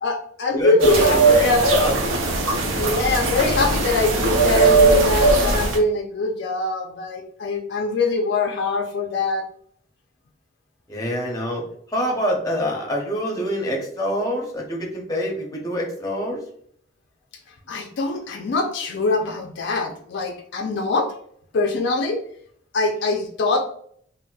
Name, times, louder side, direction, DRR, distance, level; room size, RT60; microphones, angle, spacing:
voice 1, 0.0-1.7 2.8-9.5 17.7-21.1 21.5-22.2 22.7-23.6, left 3 dB, 60° left, 3 dB, 0.4 m, -23 dB
voice 2, 0.5-2.0 2.4-3.0 10.9-11.6 11.9-16.4, equal, 20° left, -1 dB, 0.6 m, -26 dB
sound 1, 0.8-5.8, right 3 dB, 90° right, 0.6 m, -19 dB
4.0 x 2.0 x 2.3 m, 0.62 s
head